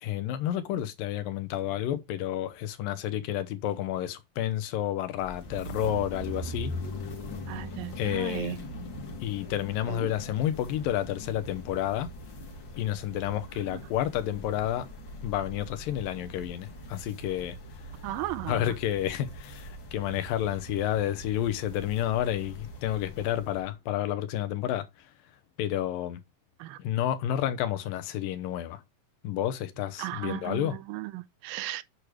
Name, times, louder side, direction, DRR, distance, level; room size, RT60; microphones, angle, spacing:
voice 1, 0.0-6.7 8.0-8.6 9.2-12.1 12.8-14.9 15.2-17.6 18.5-25.1 25.6-26.2 26.8-28.8 29.2-30.8, left 12 dB, 85° left, 2.6 m, -30 dB
sound 1, 5.2-23.7, equal, 45° left, 1.7 m, -41 dB
voice 2, 7.5-8.6 9.9-10.1 18.0-18.7 26.6-26.8 30.0-31.8, right 17 dB, 90° right, 2.3 m, -36 dB
8.4 x 3.2 x 6.3 m
omnidirectional pair, 3.9 m